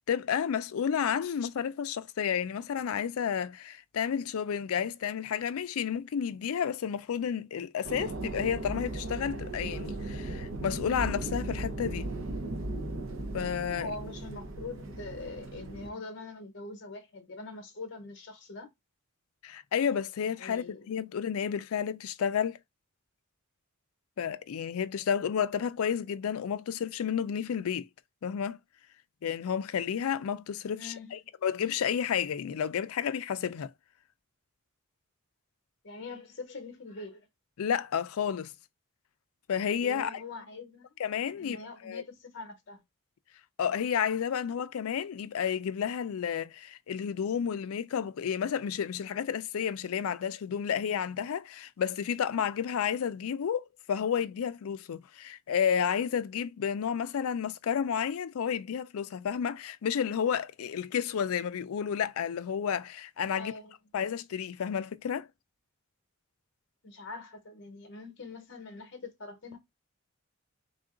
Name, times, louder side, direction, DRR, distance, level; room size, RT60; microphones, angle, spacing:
voice 1, 0.0-12.1 13.3-13.9 19.4-22.6 24.2-27.9 28.2-28.6 29.2-33.7 37.6-38.5 39.5-40.2 41.0-42.0 43.6-63.5 63.9-65.3, left 8 dB, 80° left, 0.4 m, -31 dB
sound 1, 7.8-15.9, right 2 dB, 65° right, 0.7 m, -37 dB
voice 2, 13.8-18.7 20.4-21.0 30.8-31.2 35.8-37.3 39.8-40.9 41.4-42.8 63.4-63.7 66.8-69.6, left 3 dB, 55° left, 0.8 m, -43 dB
3.6 x 2.4 x 3.7 m
head